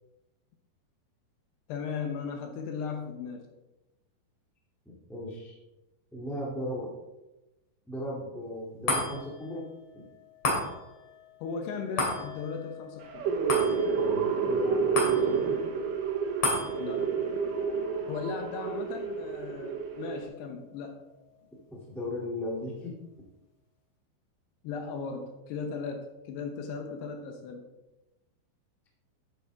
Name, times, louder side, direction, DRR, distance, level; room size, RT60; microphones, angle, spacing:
voice 1, 1.7-3.5 11.4-13.3 16.8-17.1 18.1-21.0 24.6-27.7, left 5 dB, 75° left, 4 dB, 2.6 m, -37 dB
voice 2, 5.1-5.6 6.1-6.9 7.8-10.0 13.6-15.6 21.7-22.9, left 1 dB, ahead, -4 dB, 0.3 m, -37 dB
sound 1, 8.9-21.4 21.9-22.0, left 2 dB, 35° left, 3.1 m, -36 dB
sound 2, 13.0-20.2, right 6 dB, 70° right, 2.1 m, -29 dB
11.5 x 9.0 x 3.5 m, 1.0 s
omnidirectional pair, 5.4 m